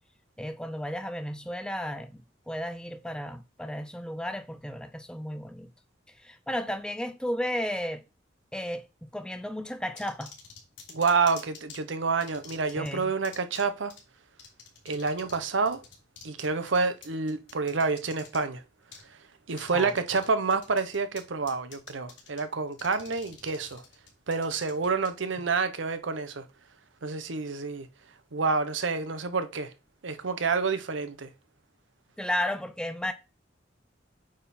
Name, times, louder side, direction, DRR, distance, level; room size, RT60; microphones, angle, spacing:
voice 1, 0.4-2.2 2.5-5.7 6.2-8.0 8.5-10.3 12.8-13.1 19.7-19.9 32.2-33.1, left 1 dB, 5° left, 0.5 m, -33 dB
sound 1, 10.0-11.8 12.2-12.9 13.2-13.6 13.9-14.0 14.4-15.4 15.7-18.4 18.9-19.0 19.5-20.3 20.5-21.2 21.5-22.4 22.7-25.1, left 7 dB, 75° left, 2.8 m, -47 dB
voice 2, 10.9-13.9 14.8-15.8 16.2-18.6 19.5-23.8 24.3-26.4 27.0-27.9 28.3-29.7 30.0-31.3, right 4 dB, 90° right, 0.8 m, -28 dB
8.8 x 3.7 x 4.2 m
head